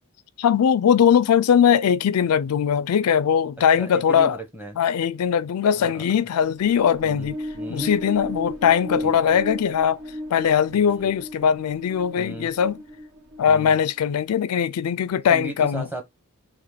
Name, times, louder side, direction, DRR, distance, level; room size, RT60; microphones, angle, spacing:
voice 1, 0.4-4.4 4.8-7.4 7.7-10.0 10.3-12.8 13.4-15.9, left 8 dB, 85° left, 0.4 m, -20 dB
voice 2, 3.8-4.8 5.7-6.1 7.0-7.9 9.0-9.4 10.7-10.8 12.2-12.5 13.5-13.7 15.3-16.0, right 1 dB, 10° right, 1.0 m, -36 dB
sound 1, 6.5-14.1, left 1 dB, 55° right, 1.1 m, -35 dB
3.9 x 3.0 x 3.5 m
head